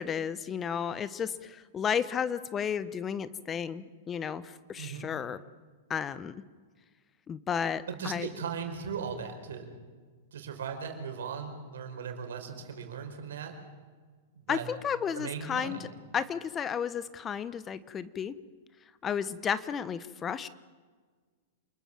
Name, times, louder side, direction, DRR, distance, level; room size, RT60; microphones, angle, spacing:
voice 1, 0.0-5.4 5.9-6.4 7.3-8.3 14.5-15.8 16.1-18.3 19.0-20.5, left 7 dB, 25° left, 15 dB, 1.1 m, -33 dB
voice 2, 4.8-5.1 7.9-9.7 10.3-13.5 14.3-14.7 15.1-15.9, right 6 dB, 75° right, 5 dB, 4.9 m, -38 dB
28.0 x 21.0 x 7.5 m, 1.5 s
hypercardioid pair, 110°, 0 cm